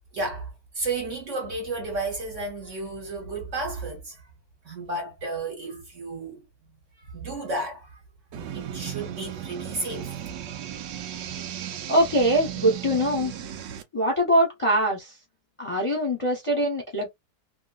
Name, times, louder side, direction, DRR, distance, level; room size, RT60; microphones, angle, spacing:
voice 1, 0.1-4.2 4.6-6.5 7.0-8.0 8.5-10.1, right 2 dB, 50° right, 1.2 m, -32 dB
sound 1, 8.3-13.8, right 10 dB, 85° right, 1.3 m, -36 dB
voice 2, 11.9-13.3 13.9-15.1 15.6-17.1, equal, 25° left, 0.9 m, -23 dB
3.0 x 2.7 x 2.4 m
omnidirectional pair, 1.9 m